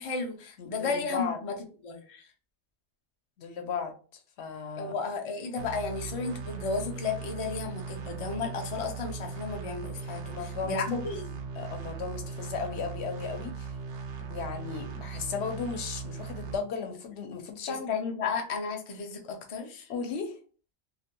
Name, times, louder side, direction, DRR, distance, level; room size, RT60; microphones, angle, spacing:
voice 1, 0.0-1.6 1.8-2.3 4.8-11.4 17.7-19.9, left 4 dB, 50° left, 3 dB, 0.4 m, -33 dB
voice 2, 0.6-1.4 3.4-3.9 4.4-4.9 10.3-10.8 11.6-13.7 14.2-17.9 19.9-20.4, left 5 dB, 75° left, 5 dB, 0.8 m, -35 dB
sound 1, 5.6-16.6, right 5 dB, 85° right, 0.9 m, -39 dB
2.4 x 2.1 x 2.8 m, 0.39 s
omnidirectional pair, 1.1 m